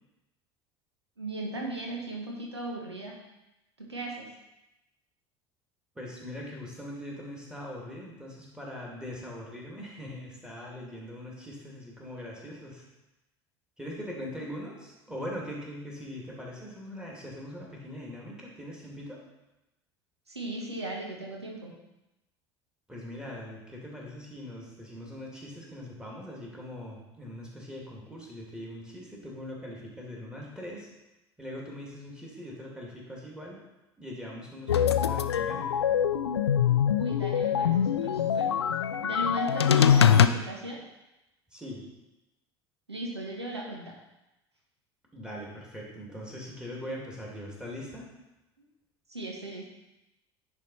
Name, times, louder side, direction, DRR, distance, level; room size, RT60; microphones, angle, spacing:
voice 1, 1.2-3.2 3.8-4.3 20.3-21.7 37.0-38.5 39.0-40.8 42.9-43.9 49.1-49.6, right 2 dB, 85° right, -1 dB, 1.2 m, -36 dB
voice 2, 5.9-12.9 13.8-19.2 22.9-30.9 31.4-33.6 34.0-35.8 41.5-41.8 45.1-48.1, left 1 dB, 5° right, -3 dB, 2.4 m, -41 dB
sound 1, 34.7-40.3, left 8 dB, 80° left, 0.4 m, -23 dB
10.0 x 4.4 x 4.2 m, 0.96 s
figure-of-eight pair, 70°, 14 cm